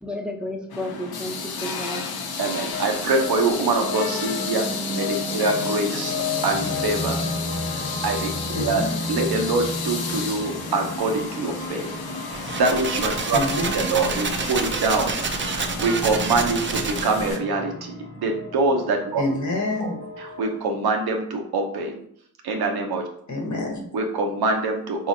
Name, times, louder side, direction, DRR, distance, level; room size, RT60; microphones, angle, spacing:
voice 1, 0.0-2.3 5.2-5.3, left 1 dB, ahead, 1 dB, 0.7 m, -33 dB
sound 1, 0.7-17.4, left 4 dB, 80° left, 0.6 m, -32 dB
voice 2, 2.4-7.2 7.6-8.3 8.6-11.9 12.2-15.2 15.5-19.2 19.8-22.0 22.4-23.1 23.9-25.1, right 3 dB, 90° right, 3 dB, 0.7 m, -25 dB
sound 2, 2.7-20.6, left 2 dB, 15° left, 1.0 m, -33 dB
voice 3, 8.5-9.0 13.3-13.9 19.2-20.0 23.3-23.9, left 2 dB, 50° left, 1 dB, 0.9 m, -27 dB
sound 3, 12.3-17.3, right 4 dB, 35° right, 0.4 m, -28 dB
4.1 x 2.7 x 2.7 m, 0.65 s
cardioid pair, 65°, 37 cm